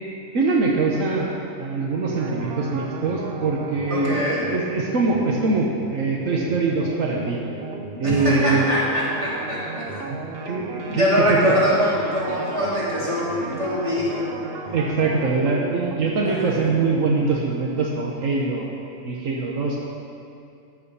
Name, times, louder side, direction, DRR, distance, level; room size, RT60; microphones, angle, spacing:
voice 1, 0.3-4.2 4.5-7.4 8.0-8.7 9.8-10.2 10.5-11.6 14.7-19.8, right 3 dB, 75° right, -2 dB, 1.4 m, -23 dB
sound 1, 2.1-17.2, right 3 dB, 50° right, 1.0 m, -35 dB
voice 2, 3.9-4.5 8.0-9.9 11.0-14.3 16.4-16.6, equal, 25° right, -8 dB, 3.2 m, -23 dB
13.5 x 7.0 x 5.6 m, 2.5 s
omnidirectional pair, 1.4 m